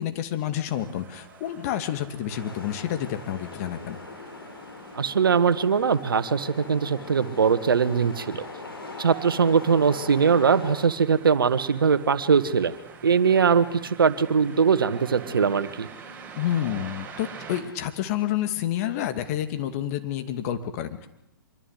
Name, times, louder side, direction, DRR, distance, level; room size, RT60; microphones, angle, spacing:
voice 1, 0.0-4.0 16.4-21.1, left 11 dB, 40° left, 9 dB, 2.5 m, -29 dB
sound 1, 0.7-17.6, right 5 dB, 15° right, 7.0 m, -46 dB
sound 2, 2.3-10.9, left 3 dB, 80° left, 5.9 m, -41 dB
voice 2, 5.0-8.5 9.0-12.7 13.0-15.9, right 6 dB, 70° right, 12 dB, 1.8 m, -21 dB
25.0 x 23.0 x 8.4 m, 0.86 s
figure-of-eight pair, 120°, 12 cm